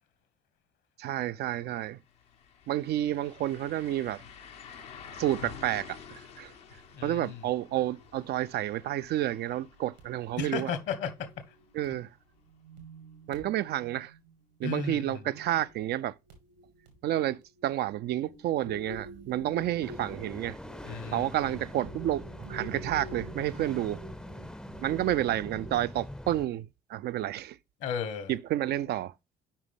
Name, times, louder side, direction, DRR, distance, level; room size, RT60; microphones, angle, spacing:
voice 1, 1.0-2.0 2.7-4.2 5.2-6.5 7.0-10.7 11.7-12.1 13.3-14.1 14.6-16.2 17.0-20.6 21.1-24.0 24.8-27.6 28.3-29.1, right 13 dB, 50° right, 0.4 m, -30 dB
sound 1, 1.7-1.8 2.1-11.9 12.2-12.3 15.1-15.2, left 7 dB, 80° left, 1.2 m, -49 dB
sound 2, 6.9-7.2 7.6-8.0 8.3-8.4 9.0-9.1 9.5-11.9 12.3-15.1 15.4-15.9 16.3-17.0 17.4-17.8 18.1-25.7, right 2 dB, 85° right, 2.1 m, -48 dB
voice 2, 7.0-7.4 10.4-11.3 14.6-15.2 20.9-21.3 27.8-28.3, left 6 dB, 60° left, 1.3 m, -34 dB
sound 3, 19.8-26.5, left 1 dB, 5° left, 0.6 m, -43 dB
7.4 x 5.1 x 3.5 m
hypercardioid pair, 50°, 21 cm